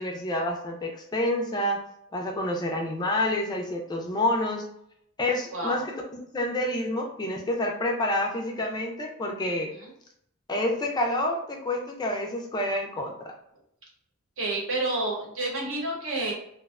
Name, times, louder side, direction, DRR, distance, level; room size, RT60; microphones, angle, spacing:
voice 1, 0.0-1.8 2.1-4.6 5.2-5.9 6.3-9.7 10.5-13.3, left 1 dB, 20° left, 1 dB, 0.3 m, -28 dB
voice 2, 5.5-5.8 9.7-9.9 14.4-16.3, right 2 dB, 70° right, -2 dB, 0.9 m, -29 dB
2.5 x 2.0 x 2.4 m, 0.72 s
head